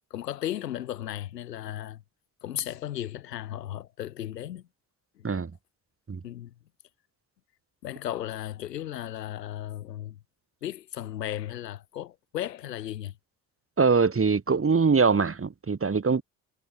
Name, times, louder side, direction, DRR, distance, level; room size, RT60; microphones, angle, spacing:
voice 1, 0.1-2.0 2.4-4.7 5.2-5.3 6.2-6.5 7.8-10.2 10.6-13.2, left 12 dB, 85° left, 5.9 m, -35 dB
voice 2, 13.8-16.2, right 5 dB, 25° right, 2.8 m, -23 dB
hypercardioid pair, 50°, 47 cm